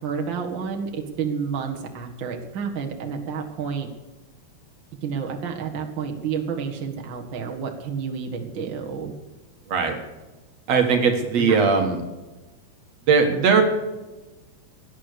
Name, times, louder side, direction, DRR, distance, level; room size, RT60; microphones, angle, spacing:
voice 1, 0.0-3.9 5.0-9.1 11.4-11.6, right 6 dB, 45° right, 2 dB, 2.1 m, -30 dB
voice 2, 10.7-12.0 13.1-13.6, right 5 dB, 65° right, 4 dB, 2.7 m, -19 dB
17.5 x 11.0 x 6.8 m, 1.1 s
omnidirectional pair, 3.4 m